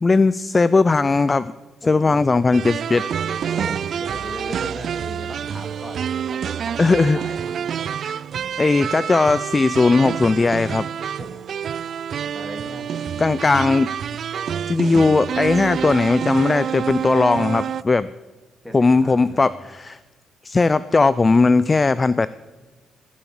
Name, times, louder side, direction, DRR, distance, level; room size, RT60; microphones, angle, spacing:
voice 1, 0.0-1.5 1.9-3.0 6.8-7.2 8.0-8.2 8.6-10.9 13.2-13.9 14.7-18.1 18.7-20.0 20.4-22.3, left 3 dB, 25° left, 16 dB, 0.4 m, -18 dB
voice 2, 1.8-2.2 3.4-7.7 11.2-11.5 12.2-13.7 18.6-19.6, equal, 10° left, 3 dB, 2.8 m, -38 dB
sound 1, 2.5-17.8, right 8 dB, 60° right, 0.3 m, -27 dB
17.0 x 7.1 x 7.1 m, 1.2 s
cardioid pair, 90°, 0 cm